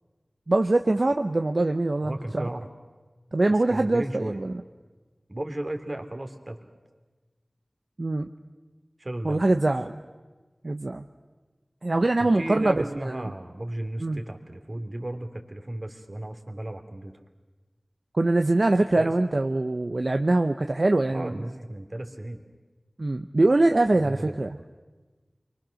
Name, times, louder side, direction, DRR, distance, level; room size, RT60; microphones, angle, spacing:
voice 1, 0.5-2.5 3.3-4.5 8.0-8.3 9.2-9.9 10.6-11.0 11.8-13.3 14.0-14.2 18.1-21.4 23.0-24.5, right 2 dB, 65° right, 6 dB, 0.8 m, -23 dB
voice 2, 2.0-2.7 3.7-4.4 5.3-6.7 9.0-9.6 12.2-17.1 19.0-19.1 21.1-22.4 23.9-24.5, right 1 dB, 50° right, 5 dB, 2.6 m, -35 dB
29.5 x 23.5 x 6.4 m, 1.3 s
wide cardioid pair, 45°, 0 cm